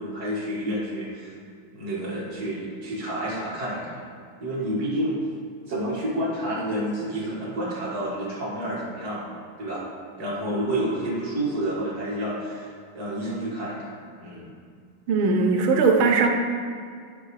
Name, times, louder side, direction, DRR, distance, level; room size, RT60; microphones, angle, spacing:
voice 1, 0.0-1.3 1.7-4.0 4.4-5.2 5.7-9.8 10.2-13.9 14.2-14.5, right 1 dB, 50° right, -6 dB, 2.3 m, -29 dB
voice 2, 15.1-16.3, right 4 dB, 80° right, 4 dB, 1.6 m, -19 dB
11.5 x 4.7 x 3.2 m, 2.2 s
omnidirectional pair, 2.3 m